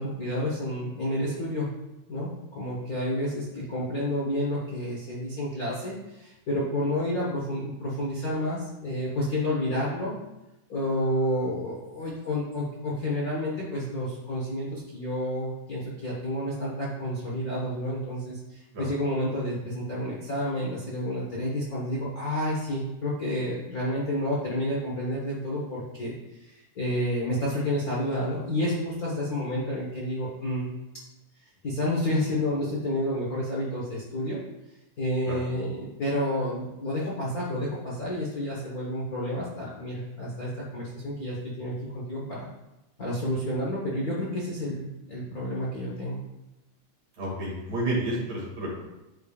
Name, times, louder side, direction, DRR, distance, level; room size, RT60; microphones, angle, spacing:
voice 1, 0.0-1.7 2.1-10.1 10.7-26.1 26.4-30.7 31.6-34.4 35.0-42.5 43.0-46.2, left 1 dB, 60° left, -6 dB, 0.9 m, -30 dB
voice 2, 47.2-48.9, right 1 dB, 55° right, -5 dB, 3.3 m, -30 dB
10.0 x 5.0 x 2.4 m, 0.98 s
omnidirectional pair, 3.7 m